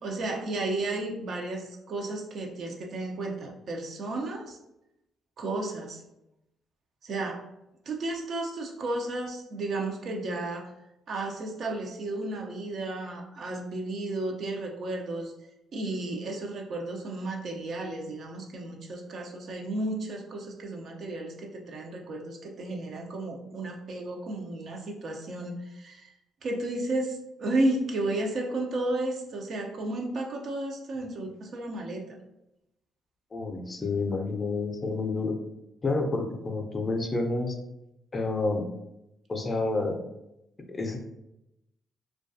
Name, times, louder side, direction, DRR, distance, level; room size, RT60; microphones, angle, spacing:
voice 1, 0.0-4.6 5.4-6.0 7.0-7.4 7.9-10.7 11.1-15.3 15.7-26.1 26.4-32.2, right 2 dB, 60° right, 1 dB, 0.4 m, -33 dB
voice 2, 33.3-35.4 35.8-37.6 38.1-38.7 39.3-40.0 40.7-41.0, left 3 dB, 30° left, 3 dB, 0.5 m, -29 dB
2.2 x 2.2 x 2.6 m, 0.87 s
supercardioid pair, 60°, 0 cm